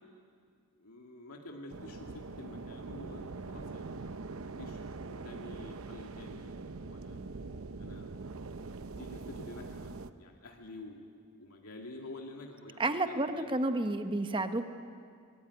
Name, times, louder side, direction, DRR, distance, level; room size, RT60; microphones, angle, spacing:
voice 1, 0.8-7.2 7.8-8.1 8.8-9.9 10.2-13.5, left 2 dB, 85° left, 1 dB, 2.4 m, -49 dB
sound 1, 1.7-10.1, right 3 dB, 70° right, 0.8 m, -43 dB
voice 2, 12.8-14.7, right 2 dB, 25° right, 8 dB, 1.1 m, -31 dB
23.0 x 19.0 x 9.7 m, 2.2 s
head